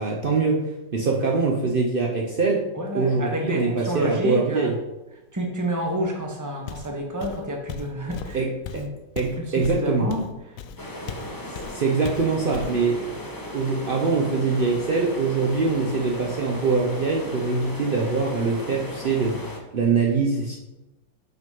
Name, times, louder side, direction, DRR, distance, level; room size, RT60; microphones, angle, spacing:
voice 1, 0.0-2.6 2.9-4.7 8.3-8.5 8.7-8.8 9.2-10.1 11.5-13.0 13.5-19.4 19.7-20.6, right 4 dB, 65° right, -1 dB, 0.5 m, -23 dB
voice 2, 2.7-4.8 5.3-8.4 8.7-8.9 9.4-10.6, equal, 15° right, 1 dB, 0.8 m, -29 dB
Walk footsteps, 6.7-6.9 7.2-11.3 11.5-11.8 12.0-12.8, left 7 dB, 80° left, 0.7 m, -36 dB
sound 1, 10.8-19.6, left 1 dB, 30° left, 0.4 m, -36 dB
6.0 x 5.0 x 5.4 m, 1.0 s
omnidirectional pair, 2.0 m